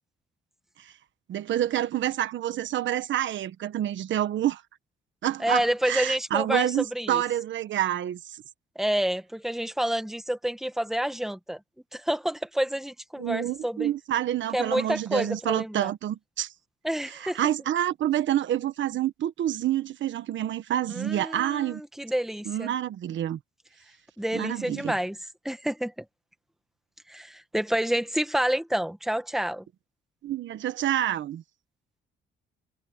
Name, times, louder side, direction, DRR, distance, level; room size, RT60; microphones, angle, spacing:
voice 1, 1.3-4.6 5.2-8.4 13.2-16.5 17.1-21.8 22.4-23.4 24.3-24.9 30.2-31.4, right 12 dB, 70° right, 1.4 m, -28 dB
voice 2, 5.4-7.2 8.7-11.6 11.9-13.9 14.5-15.9 16.8-17.4 20.9-22.7 24.2-25.2 25.4-26.0 27.1-29.6, right 1 dB, ahead, 1.6 m, -28 dB
cardioid pair, 90°, 20 cm